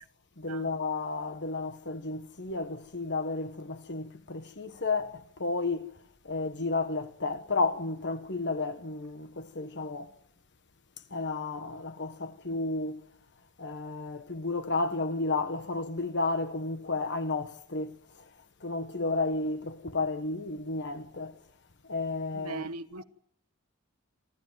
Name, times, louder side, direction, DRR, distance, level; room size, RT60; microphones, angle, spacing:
voice 1, 0.4-5.9 6.2-10.1 11.1-13.0 13.6-18.3 18.6-21.3 21.8-22.7 23.0-23.1, left 3 dB, 55° left, 1.3 m, -32 dB
voice 2, 22.3-23.0, right 3 dB, 85° right, 1.0 m, -39 dB
25.0 x 13.5 x 9.2 m
head